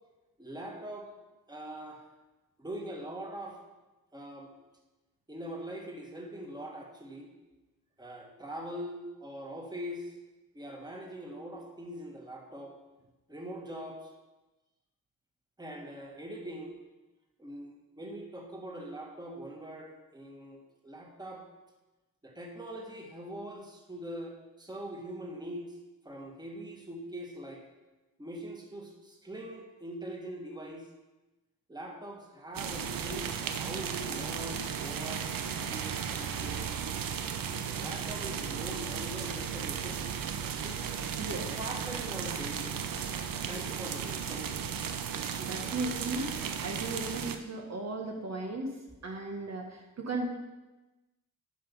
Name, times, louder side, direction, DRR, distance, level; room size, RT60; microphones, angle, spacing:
voice 1, 0.4-1.1 1.5-2.1 2.6-3.6 4.1-4.5 5.3-7.3 8.0-10.1 10.5-12.8 13.3-14.1 15.6-16.7 17.4-21.5 22.2-25.8 26.1-27.6 28.2-30.9 31.7-36.7 37.5-40.0 40.6-41.1 41.6-42.9 43.5-44.6, right 1 dB, 10° right, 0 dB, 1.7 m, -42 dB
sound 1, 32.5-47.4, right 7 dB, 85° right, 0.7 m, -35 dB
voice 2, 41.2-41.5 45.4-50.3, right 2 dB, 50° right, 1 dB, 1.3 m, -36 dB
10.0 x 5.8 x 5.4 m, 1.1 s
wide cardioid pair, 105°, 33 cm